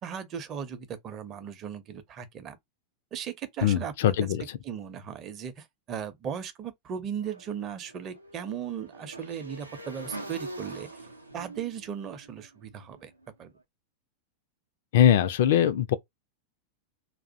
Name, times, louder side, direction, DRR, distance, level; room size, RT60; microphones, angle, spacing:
voice 1, 0.0-2.6 3.1-4.1 4.6-10.9 11.3-13.1 13.4-13.5, right 8 dB, 30° right, 0.6 m, -37 dB
voice 2, 3.6-4.4 14.9-15.9, left 10 dB, 55° left, 0.3 m, -21 dB
Motorcycle / Engine, 7.2-13.3, right 2 dB, 85° right, 0.5 m, -44 dB
2.4 x 2.0 x 2.5 m
figure-of-eight pair, 90°, 0 cm